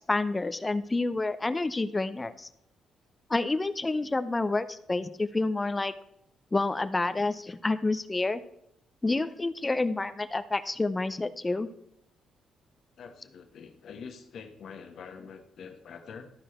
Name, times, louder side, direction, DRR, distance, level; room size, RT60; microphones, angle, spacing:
voice 1, 0.1-2.5 3.3-5.9 6.5-8.4 9.0-11.7, left 2 dB, 20° left, 12 dB, 0.5 m, -28 dB
voice 2, 13.0-16.2, left 6 dB, 65° left, 5 dB, 1.1 m, -45 dB
13.0 x 4.7 x 4.3 m, 0.76 s
cardioid pair, 90°, 0 cm